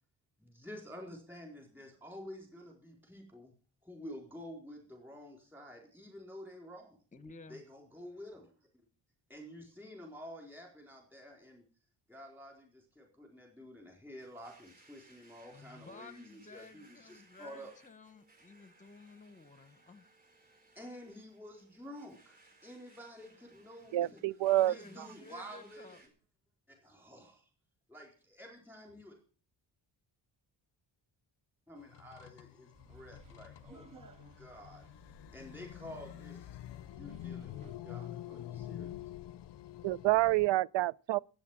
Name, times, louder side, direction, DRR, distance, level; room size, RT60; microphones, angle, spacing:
voice 1, 0.4-3.5 3.8-7.0 7.5-8.5 9.3-11.6 12.1-17.7 20.8-24.2 24.6-26.1 26.7-27.5 27.9-29.1 31.7-34.1 34.4-34.9 35.3-36.6 36.9-38.9, equal, 5° right, 4.2 m, -50 dB
voice 2, 7.1-7.6 15.5-20.0 24.1-24.2 24.5-26.0, left 3 dB, 15° left, 1.0 m, -53 dB
Domestic sounds home sounds, 14.2-26.1, right 2 dB, 20° right, 4.3 m, -64 dB
voice 3, 23.9-24.7 39.8-41.2, right 16 dB, 80° right, 0.5 m, -28 dB
sound 1, 31.8-40.5, left 12 dB, 65° left, 0.6 m, -47 dB
sound 2, 32.7-37.8, right 2 dB, 45° right, 1.9 m, -59 dB
13.0 x 8.9 x 7.3 m
wide cardioid pair, 165°, 44 cm